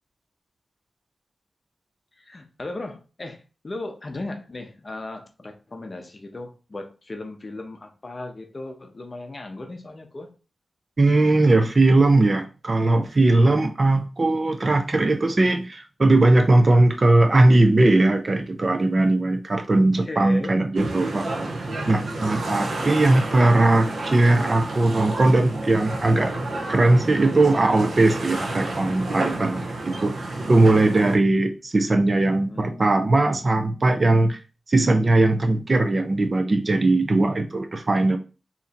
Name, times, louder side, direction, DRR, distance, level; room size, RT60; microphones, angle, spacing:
voice 1, 2.1-10.4 19.7-20.5 22.8-23.4 32.3-32.8, left 2 dB, 30° left, 5 dB, 0.6 m, -37 dB
voice 2, 11.0-21.5 21.9-26.3 26.7-30.1 30.5-34.4 34.7-38.2, right 2 dB, 30° right, 7 dB, 0.4 m, -19 dB
sound 1, 20.8-31.2, right 2 dB, 75° right, 0.7 m, -30 dB
2.8 x 2.6 x 4.2 m, 0.33 s
wide cardioid pair, 160°, 0 cm